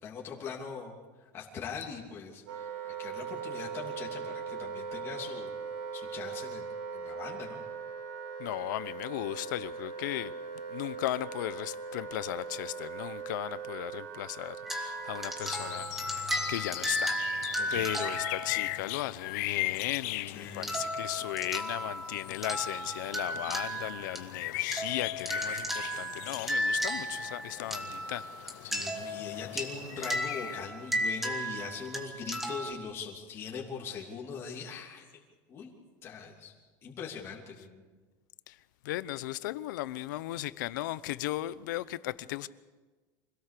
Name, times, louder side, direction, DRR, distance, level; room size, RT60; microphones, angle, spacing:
voice 1, 0.0-1.0 1.3-5.5 5.9-7.6 17.6-17.9 20.3-20.7 28.6-35.0 35.5-35.7 36.0-36.5 36.8-37.8, left 6 dB, 25° left, 2.9 m, -41 dB
Wind instrument woodwind instrument, 2.5-15.8, right 6 dB, 60° right, 2.4 m, -40 dB
voice 2, 8.4-10.3 10.7-17.2 17.7-28.3 38.5-38.6 38.8-42.5, left 16 dB, 85° left, 0.8 m, -36 dB
sound 1, 14.7-19.0 20.6-24.3 24.7-32.7, equal, 5° right, 1.8 m, -35 dB
sound 2, 15.4-30.6, left 20 dB, 60° left, 0.6 m, -40 dB
25.5 x 17.5 x 6.8 m
cardioid pair, 175°, 10 cm